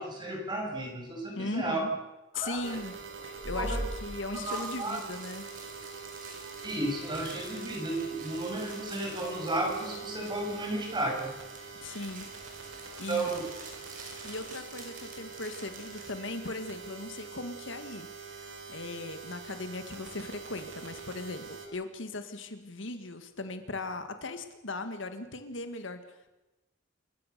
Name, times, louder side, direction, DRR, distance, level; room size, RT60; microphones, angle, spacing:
voice 1, 0.0-1.8 2.3-2.8 3.5-3.8 4.3-5.0 6.6-11.3 11.7-12.0 13.1-13.5, right 2 dB, 25° right, 0 dB, 6.7 m, -33 dB
voice 2, 1.4-1.9 2.3-2.9 3.2-5.5 11.8-12.3 12.7-13.3 14.2-26.3, left 2 dB, 70° left, 9 dB, 1.9 m, -38 dB
sound 1, 2.4-16.1, right 2 dB, 45° right, 5.9 m, -45 dB
sound 2, 2.6-21.7, right 5 dB, 70° right, 4.3 m, -44 dB
28.0 x 16.0 x 6.9 m, 1.0 s
head